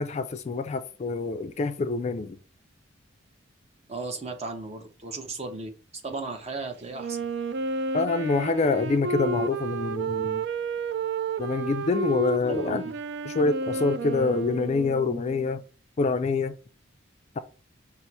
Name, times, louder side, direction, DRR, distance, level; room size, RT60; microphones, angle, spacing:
voice 1, 0.0-2.4 7.9-10.5 11.4-12.8 13.3-15.6 16.0-16.5, left 3 dB, 35° left, 0.3 m, -26 dB
voice 2, 3.9-5.7 6.0-7.3 12.5-12.9 13.7-13.9, right 3 dB, 35° right, 0.7 m, -35 dB
Wind instrument woodwind instrument, 6.9-15.5, right 4 dB, 60° right, 0.4 m, -31 dB
5.4 x 2.0 x 4.5 m
head